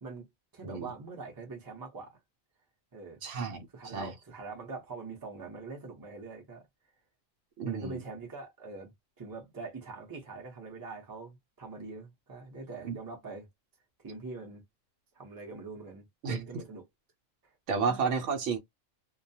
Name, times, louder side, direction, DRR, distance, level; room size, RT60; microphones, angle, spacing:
voice 1, 0.5-2.2 2.9-3.2 3.7-6.6 7.6-8.9 9.2-13.5 14.0-14.6 15.1-16.8 17.4-17.5 17.9-18.1, right 4 dB, 20° right, 0.6 m, -43 dB
voice 2, 3.2-3.7 3.9-4.1 7.6-8.0 12.8-13.0 16.2-16.4 17.7-18.6, right 5 dB, 70° right, 0.9 m, -31 dB
2.3 x 2.1 x 2.6 m
omnidirectional pair, 1.4 m